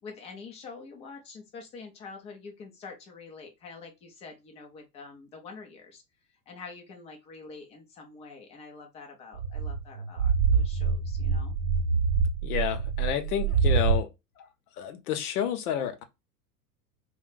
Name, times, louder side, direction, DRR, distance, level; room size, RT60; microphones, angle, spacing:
voice 1, 0.0-6.0 6.5-11.5, left 4 dB, 15° left, 0.3 m, -46 dB
sound 1, 9.3-14.0, right 5 dB, 75° right, 0.6 m, -25 dB
voice 2, 12.4-14.1 14.4-14.5 14.7-16.0, left 9 dB, 65° left, 0.7 m, -30 dB
2.5 x 2.2 x 3.7 m
hypercardioid pair, 100°, 50 cm